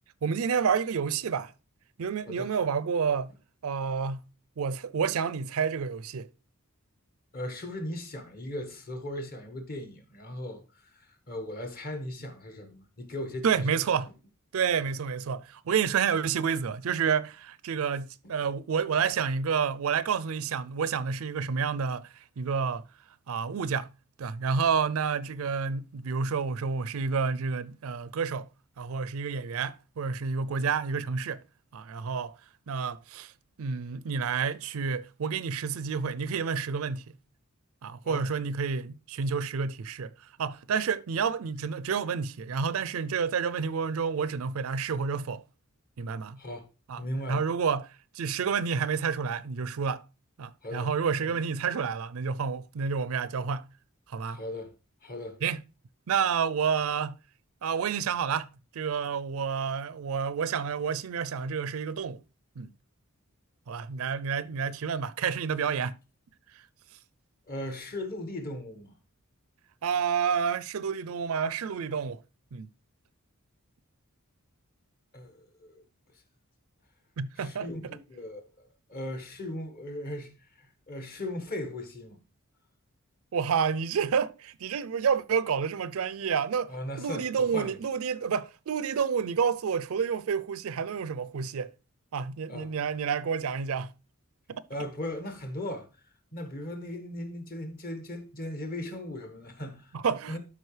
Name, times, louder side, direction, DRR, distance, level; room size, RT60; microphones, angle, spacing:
voice 1, 0.2-1.5 2.0-3.3 3.6-4.2 4.6-6.3 13.4-14.1 14.5-22.1 22.4-22.8 23.3-23.9 24.2-28.5 28.8-31.4 31.7-32.3 32.7-33.3 33.6-37.0 37.8-40.1 40.4-45.4 46.0-46.4 46.9-47.0 47.3-47.9 48.2-50.0 50.4-53.6 54.1-54.4 55.4-55.6 56.1-57.2 57.6-58.5 58.7-62.2 62.6-62.7 63.7-65.9 69.8-72.2 72.5-72.7 77.2-77.7 83.3-86.7 87.0-91.7 92.1-93.9 94.5-94.6 99.9-100.4, right 6 dB, 70° right, 0.4 m, -29 dB
voice 2, 7.3-10.6 10.9-13.8 38.0-38.3 46.4-46.7 47.0-47.5 50.6-50.9 51.2-51.4 54.3-54.7 55.0-55.4 67.5-68.9 75.1-75.8 77.4-78.4 78.9-82.2 86.7-87.7 92.5-92.7 94.7-95.9 96.3-99.9 100.3-100.4, left 1 dB, 45° left, 1.5 m, -38 dB
12.5 x 4.9 x 3.3 m
head